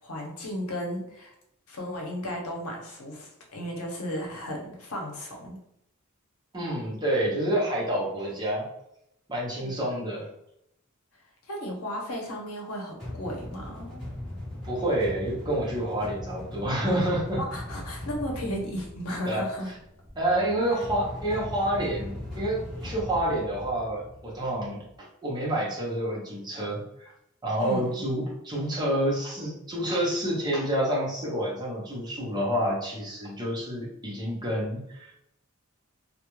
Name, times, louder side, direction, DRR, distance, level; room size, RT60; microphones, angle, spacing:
voice 1, 0.0-1.3 1.7-5.6 9.6-9.7 11.5-14.0 17.4-19.7 27.6-28.1, equal, 80° left, 0 dB, 0.7 m, -35 dB
voice 2, 6.5-8.7 9.3-10.3 14.6-17.4 19.2-19.4 20.2-24.8 25.2-27.1 27.4-35.1, right 1 dB, 20° right, -5 dB, 0.7 m, -28 dB
sound 1, 13.0-24.9, left 1 dB, ahead, 1.1 m, -40 dB
2.3 x 2.1 x 3.0 m, 0.79 s
head